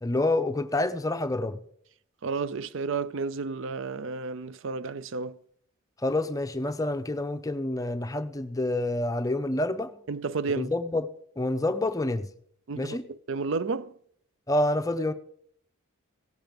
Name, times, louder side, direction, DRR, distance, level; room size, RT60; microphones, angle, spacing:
voice 1, 0.0-1.6 6.0-9.9 10.6-11.1 11.4-12.3 12.7-13.1 14.5-15.1, left 2 dB, 15° left, 0.6 m, -28 dB
voice 2, 2.2-5.4 10.1-10.7 12.7-13.9, right 4 dB, 60° right, 0.5 m, -31 dB
17.0 x 7.6 x 5.2 m
head